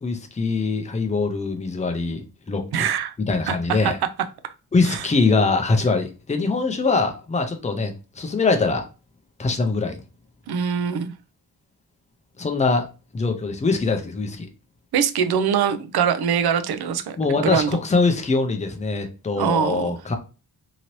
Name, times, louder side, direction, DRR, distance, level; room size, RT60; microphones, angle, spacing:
voice 1, 0.0-2.9 3.2-4.0 4.7-8.8 9.4-10.0 12.4-12.9 13.1-14.5 17.2-20.2, left 3 dB, 20° left, 0.4 m, -23 dB
voice 2, 2.7-3.1 3.5-3.9 4.8-5.1 10.5-11.1 14.9-17.7 19.4-20.0, right 7 dB, 75° right, 0.5 m, -23 dB
2.9 x 2.6 x 3.0 m
wide cardioid pair, 165°, 39 cm